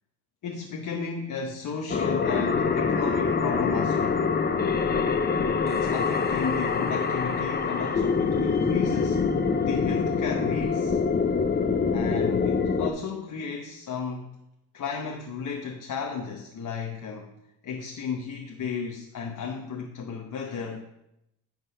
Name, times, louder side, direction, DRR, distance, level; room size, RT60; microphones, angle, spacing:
voice 1, 0.4-4.3 5.6-9.2 9.6-11.0 11.9-14.4 14.7-17.3 17.6-20.8, left 5 dB, 50° left, 2 dB, 0.9 m, -34 dB
sound 1, 1.9-12.9, left 5 dB, 25° left, 0.6 m, -25 dB
10.0 x 3.9 x 5.5 m, 0.84 s
cardioid pair, 105°, 39 cm